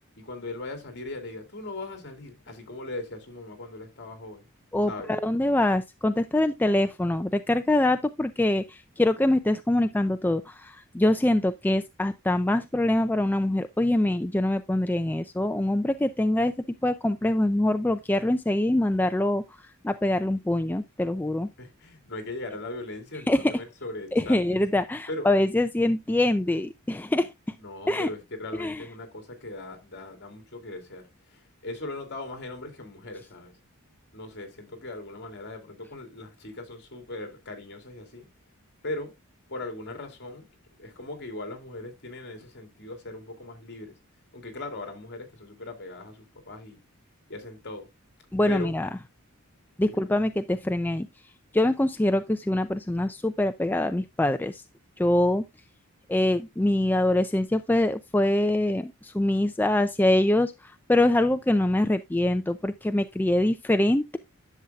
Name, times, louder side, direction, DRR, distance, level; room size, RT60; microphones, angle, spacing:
voice 1, 0.2-4.5 4.9-5.1 21.6-24.6 25.1-25.3 27.6-33.6 34.1-38.3 38.8-39.1 39.5-40.5 40.8-44.0 44.3-46.8 47.3-47.9 48.5-48.8 49.8-50.0, left 2 dB, 50° left, 2.9 m, -39 dB
voice 2, 4.7-16.5 16.8-21.5 23.3-23.5 24.1-27.3 27.9-28.1 28.6-28.8 48.3-48.9 49.8-51.1 51.5-54.6 55.0-55.4 56.1-64.2, left 1 dB, 10° left, 0.3 m, -24 dB
11.0 x 7.1 x 2.3 m
head